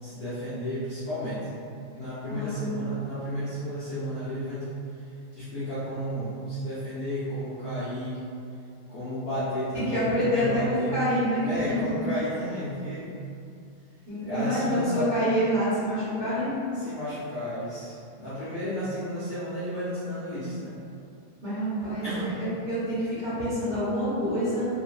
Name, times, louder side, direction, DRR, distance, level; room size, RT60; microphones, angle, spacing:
voice 1, 0.0-1.5 1.9-4.7 5.3-8.2 8.9-11.0 11.4-13.1 14.2-15.1 16.7-20.8 22.0-22.4, equal, 60° left, -12 dB, 1.1 m, -32 dB
voice 2, 2.3-2.7 9.7-11.9 14.1-16.5 21.4-24.7, equal, 25° right, -16 dB, 1.3 m, -27 dB
3.0 x 3.0 x 2.5 m, 2.5 s
omnidirectional pair, 2.1 m